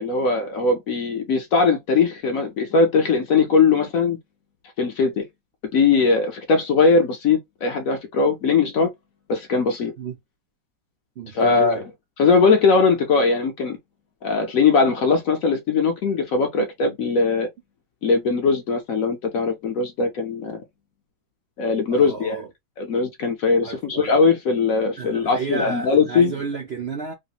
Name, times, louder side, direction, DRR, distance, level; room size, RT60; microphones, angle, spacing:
voice 1, 0.0-4.2 4.8-5.3 5.7-8.9 9.3-9.9 11.3-11.8 12.2-13.8 14.2-17.5 18.0-20.6 21.6-22.4 22.8-26.3, left 4 dB, 65° left, 0.9 m, -20 dB
voice 2, 11.2-11.8 16.6-16.7 18.3-18.4 21.9-22.5 23.6-24.1 25.0-27.1, right 5 dB, 65° right, 0.6 m, -32 dB
3.2 x 2.5 x 2.9 m
omnidirectional pair, 1.9 m